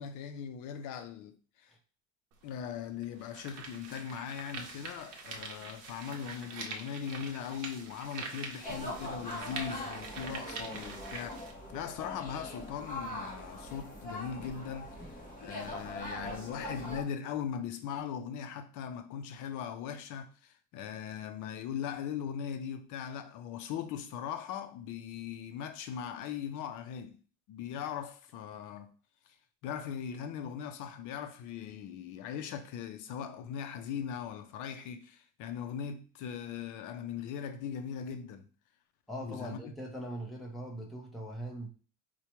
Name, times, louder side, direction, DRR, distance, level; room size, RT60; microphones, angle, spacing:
voice 1, 0.0-1.7 2.4-11.4 11.7-27.2 27.5-28.9 29.3-29.4 29.6-38.5 39.2-39.7, left 8 dB, 70° left, 0.5 m, -40 dB
sound 1, 2.3-2.4 3.0-11.5, right 4 dB, 55° right, 0.7 m, -44 dB
sound 2, 8.6-17.0, left 1 dB, 25° left, 0.8 m, -42 dB
voice 2, 39.1-41.7, right 1 dB, ahead, 0.6 m, -41 dB
4.6 x 2.2 x 2.9 m
cardioid pair, 175°, 31 cm